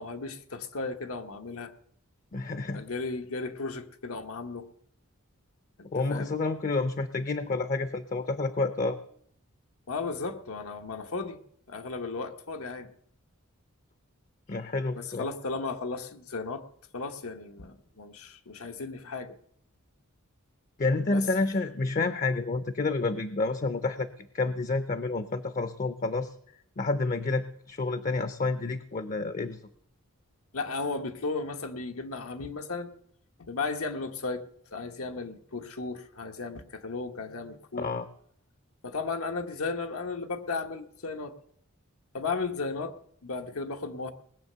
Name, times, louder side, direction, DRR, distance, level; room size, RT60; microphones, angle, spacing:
voice 1, 0.0-1.7 2.7-4.7 5.8-6.3 9.9-11.4 11.7-12.9 14.9-16.6 16.9-19.4 21.1-21.2 30.5-32.9 33.4-34.5 34.7-37.9 38.8-41.3 42.1-42.9 43.2-44.1, left 3 dB, 90° left, 6 dB, 1.1 m, -35 dB
voice 2, 2.3-2.8 5.9-9.0 14.5-15.3 20.8-26.3 26.8-29.6 37.8-38.1, left 3 dB, 40° left, 12 dB, 0.5 m, -29 dB
19.5 x 7.5 x 6.7 m, 0.68 s
head